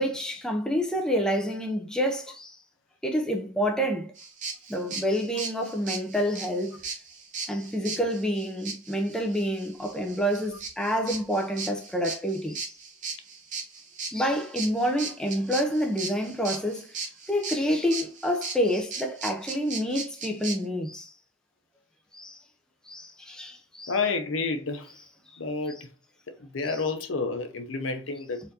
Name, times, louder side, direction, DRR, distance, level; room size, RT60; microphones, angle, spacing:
voice 1, 0.0-2.6 3.0-4.1 4.7-6.8 7.4-12.7 14.1-16.9 17.3-21.1 22.1-22.4 22.9-23.9 26.7-26.8, equal, 5° left, 0.5 m, -28 dB
sound 1, 4.2-20.6, right 4 dB, 40° right, 0.9 m, -37 dB
voice 2, 23.9-24.9 25.4-25.8 26.4-28.4, left 4 dB, 85° left, 0.7 m, -29 dB
4.2 x 2.6 x 2.7 m
head